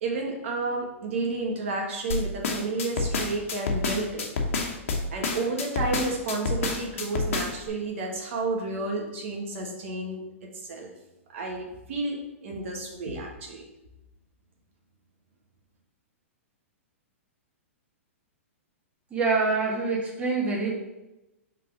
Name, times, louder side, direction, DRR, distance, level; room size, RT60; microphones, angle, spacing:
voice 1, 0.0-4.3 5.1-10.9 11.3-13.7, right 3 dB, 65° right, 0 dB, 1.3 m, -31 dB
sound 1, 2.1-7.7, left 3 dB, 70° left, 1.2 m, -28 dB
voice 2, 19.1-20.7, right 4 dB, 15° right, -3 dB, 1.6 m, -25 dB
5.7 x 3.7 x 4.9 m, 0.98 s
hypercardioid pair, 120°, 7 cm